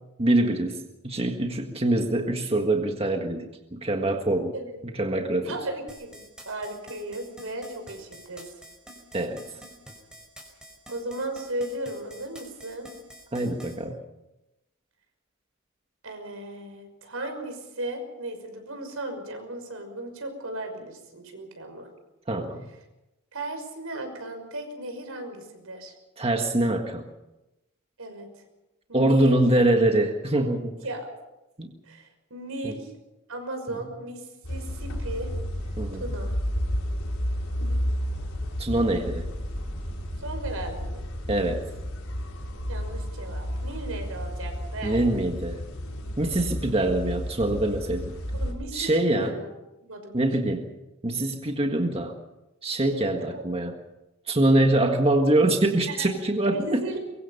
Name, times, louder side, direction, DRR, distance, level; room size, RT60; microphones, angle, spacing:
voice 1, 0.2-4.5 4.8-5.5 9.1-9.4 13.3-14.0 22.3-22.7 26.2-27.0 28.9-30.8 31.6-31.7 32.6-32.7 35.8-36.0 38.6-39.3 41.3-41.6 44.8-45.6 46.2-48.1 48.7-49.3 50.1-50.7 51.0-52.2 52.6-53.8 54.3-56.8, right 1 dB, 30° right, 3 dB, 1.7 m, -24 dB
voice 2, 5.5-8.5 10.9-12.9 16.0-21.9 23.3-25.9 28.0-28.4 28.9-29.4 30.8-31.1 31.8-32.9 33.3-35.3 36.0-36.3 40.2-41.1 42.7-45.0 48.3-49.5 49.8-50.2 52.9-53.4 55.9-56.1 56.5-57.0, right 1 dB, 80° right, 5 dB, 6.0 m, -36 dB
sound 1, 5.9-13.7, right 1 dB, 5° right, 5.2 m, -47 dB
sound 2, 34.4-48.5, equal, 80° left, 5.2 m, -32 dB
23.5 x 23.5 x 5.6 m, 0.97 s
head